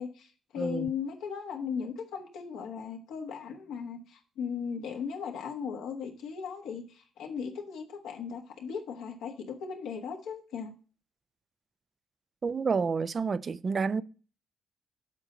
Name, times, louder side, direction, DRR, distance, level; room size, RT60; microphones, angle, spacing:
voice 1, 0.0-10.7, left 6 dB, 85° left, 1.3 m, -37 dB
voice 2, 0.6-0.9 12.4-14.0, right 5 dB, 40° right, 0.4 m, -29 dB
7.4 x 3.9 x 6.4 m
cardioid pair, 90°, 0 cm